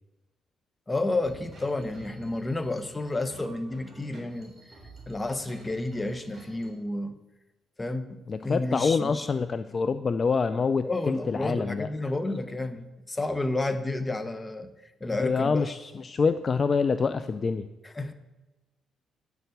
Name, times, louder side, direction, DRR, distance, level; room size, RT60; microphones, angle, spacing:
voice 1, 0.9-4.6 5.1-7.2 7.8-9.3 10.8-14.7 15.0-15.7 17.8-18.1, left 2 dB, 20° left, 10 dB, 1.0 m, -31 dB
sound 1, 1.2-6.7, right 1 dB, 25° right, 3.5 m, -50 dB
voice 2, 8.3-11.9 15.2-17.7, left 5 dB, 40° left, 12 dB, 0.5 m, -26 dB
10.0 x 6.9 x 8.0 m, 1.1 s
cardioid pair, 90°, 0 cm